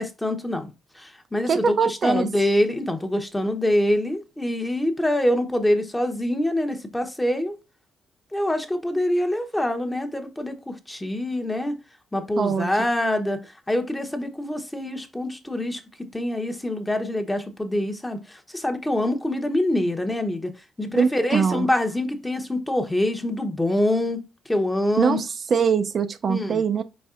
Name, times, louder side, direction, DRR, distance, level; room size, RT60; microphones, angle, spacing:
voice 1, 0.0-7.5 8.3-11.8 12.1-15.8 16.1-20.5 20.8-25.2 26.3-26.6, left 1 dB, 10° left, 0.8 m, -25 dB
voice 2, 1.5-2.3 12.4-12.7 21.0-21.7 25.0-26.8, right 6 dB, 50° right, 0.4 m, -22 dB
4.5 x 4.2 x 2.4 m
cardioid pair, 90°, 0 cm